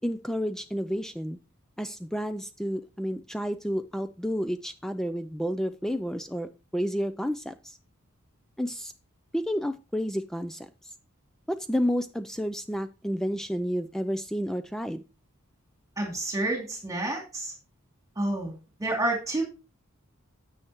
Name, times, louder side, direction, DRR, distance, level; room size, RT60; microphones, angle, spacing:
voice 1, 0.0-1.4 1.8-7.8 8.6-8.9 9.3-10.7 11.5-15.0, equal, ahead, 10 dB, 0.4 m, -30 dB
voice 2, 16.0-17.5 18.2-19.4, right 2 dB, 15° right, 1 dB, 2.5 m, -29 dB
9.8 x 7.8 x 2.9 m, 0.29 s
head